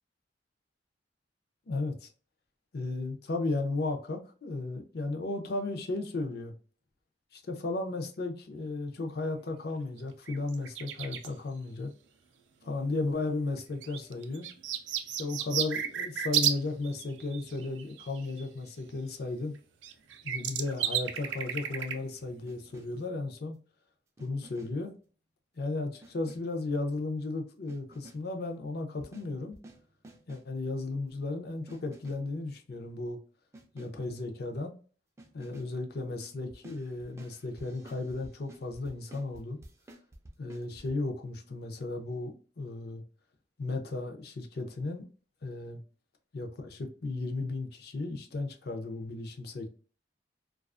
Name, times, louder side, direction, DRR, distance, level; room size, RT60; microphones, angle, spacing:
voice 1, 1.7-2.1 2.7-6.5 7.3-11.9 12.6-14.5 15.1-19.5 20.2-23.6 24.2-24.9 25.6-29.6 30.3-33.2 33.7-34.7 35.3-39.6 40.4-42.3 42.6-43.0 43.6-45.0 45.4-45.8 46.3-49.7, left 2 dB, 60° left, 0.5 m, -35 dB
sound 1, 10.0-10.1 10.3-11.3 12.7-12.8 13.8-16.6 16.8-18.4 19.6-19.7 19.8-21.9 22.5-22.6, right 10 dB, 90° right, 0.4 m, -33 dB
sound 2, 22.5-23.1 24.2-24.9 26.0-26.6 27.7-28.4 29.0-30.6 31.7-32.4 33.5-34.1 35.2-35.8 36.5-40.9, right 1 dB, 15° right, 0.3 m, -53 dB
2.4 x 2.3 x 2.4 m
head